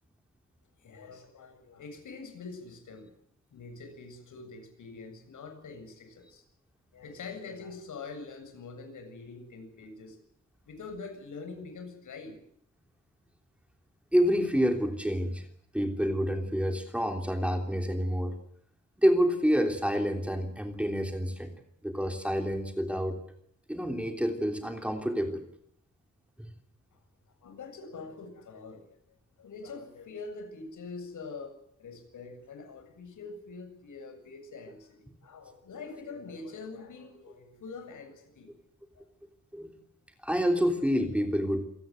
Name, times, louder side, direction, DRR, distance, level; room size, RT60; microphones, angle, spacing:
voice 1, 0.8-3.1 3.5-6.4 6.9-10.2 10.7-12.4 26.9-27.0 27.4-29.0 29.4-38.5 38.9-39.0, left 4 dB, 85° left, 7 dB, 7.5 m, -44 dB
voice 2, 14.1-15.4 15.7-18.4 19.0-21.5 21.8-23.2 23.7-25.4 39.5-39.7 40.2-41.6, equal, 5° right, 5 dB, 3.2 m, -28 dB
27.5 x 18.5 x 8.1 m, 0.68 s
wide cardioid pair, 160°, 30 cm